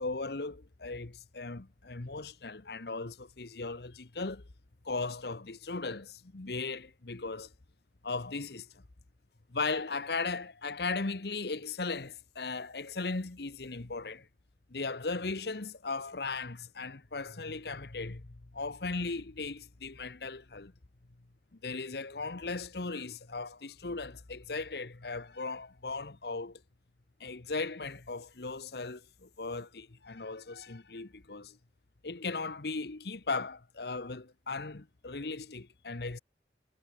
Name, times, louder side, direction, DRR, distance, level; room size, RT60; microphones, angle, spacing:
voice 1, 0.0-4.4 4.8-7.5 8.0-8.7 9.5-14.3 14.7-18.3 18.5-20.7 21.6-26.6 27.2-31.6 32.0-36.2, left 3 dB, 65° left, 1.1 m, -37 dB
head